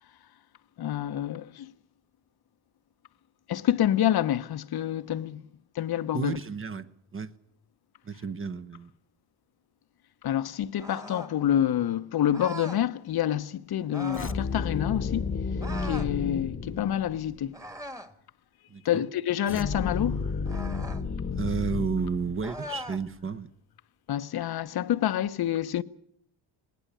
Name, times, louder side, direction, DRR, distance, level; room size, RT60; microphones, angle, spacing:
voice 1, 0.8-1.7 3.5-5.4 5.7-6.4 10.2-15.4 15.8-17.6 18.8-20.3 24.1-25.8, left 11 dB, 50° left, 1.0 m, -27 dB
voice 2, 6.1-7.3 8.0-8.9 18.7-19.1 21.3-23.5, right 5 dB, 25° right, 1.0 m, -32 dB
sound 1, 10.8-11.4 12.3-12.8 13.9-14.4 15.6-16.1 17.5-18.2 20.4-21.0 22.4-23.0, equal, 5° right, 1.6 m, -40 dB
sound 2, 14.1-17.5 19.5-22.7, left 5 dB, 25° left, 1.2 m, -32 dB
19.5 x 18.5 x 8.8 m
cardioid pair, 100°, 47 cm